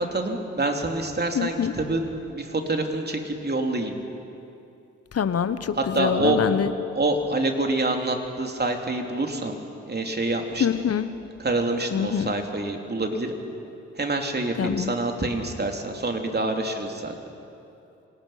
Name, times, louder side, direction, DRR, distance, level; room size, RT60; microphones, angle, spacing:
voice 1, 0.0-4.0 5.8-6.4 6.9-9.6 9.9-10.7 11.4-13.3 13.9-17.1, right 2 dB, 30° right, 3 dB, 3.2 m, -26 dB
voice 2, 1.3-1.7 5.1-6.7 10.6-11.1 11.9-12.3 14.6-14.9, left 8 dB, 50° left, 13 dB, 1.1 m, -25 dB
26.5 x 19.0 x 5.8 m, 2.7 s
hypercardioid pair, 45°, 32 cm